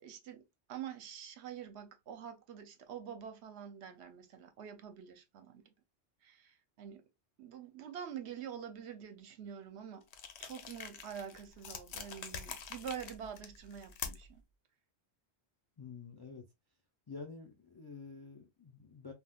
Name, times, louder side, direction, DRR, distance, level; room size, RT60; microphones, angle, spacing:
voice 1, 0.0-5.7 6.2-7.0 7.4-10.0 10.4-14.4, right 8 dB, 75° right, 0.9 m, -46 dB
sound 1, 10.1-14.4, left 6 dB, 75° left, 0.9 m, -46 dB
voice 2, 15.8-16.4 17.1-19.1, left 4 dB, 40° left, 0.3 m, -48 dB
3.5 x 2.3 x 2.2 m
omnidirectional pair, 1.2 m